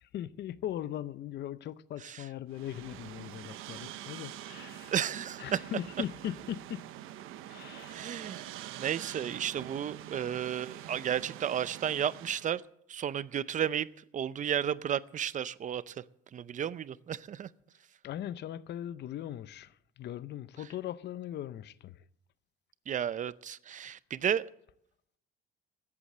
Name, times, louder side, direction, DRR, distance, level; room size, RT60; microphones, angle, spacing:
voice 1, 0.0-4.9 5.4-6.8 7.5-8.0 18.0-22.0, left 11 dB, 55° left, 0.7 m, -39 dB
sound 1, 2.5-12.6, right 12 dB, 75° right, 0.9 m, -45 dB
voice 2, 4.9-5.6 7.9-12.6 12.9-13.9 14.1-16.0 16.3-17.5 22.9-24.4, right 9 dB, 35° right, 0.6 m, -33 dB
14.5 x 8.5 x 7.5 m
cardioid pair, 110°, 21 cm